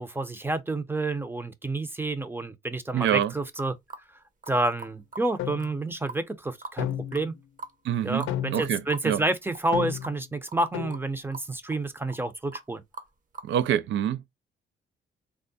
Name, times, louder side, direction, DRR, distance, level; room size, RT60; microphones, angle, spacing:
voice 1, 0.0-3.7 4.5-7.4 8.0-12.8, right 2 dB, 10° right, 0.6 m, -29 dB
voice 2, 2.9-3.3 7.8-8.3 8.5-9.2 13.4-14.3, right 10 dB, 70° right, 0.4 m, -26 dB
sound 1, 3.0-3.2 3.5-4.0 4.4-4.5 4.8-5.3 5.6-5.7 6.1-6.8 7.1-7.3 7.6-7.7 8.2-8.3 8.6-8.7 8.9-9.0 9.5-9.7 10.0-10.2 10.5-10.6 10.9-11.0 11.3-11.8 12.1-12.2 12.5-12.7 12.9-13.5, right 3 dB, 40° right, 0.8 m, -41 dB
sound 2, 5.4-5.8 6.8-7.4 8.3-8.8 9.7-10.2 10.7-11.1, left 11 dB, 80° left, 0.5 m, -32 dB
3.5 x 2.1 x 3.9 m
cardioid pair, 90°, 20 cm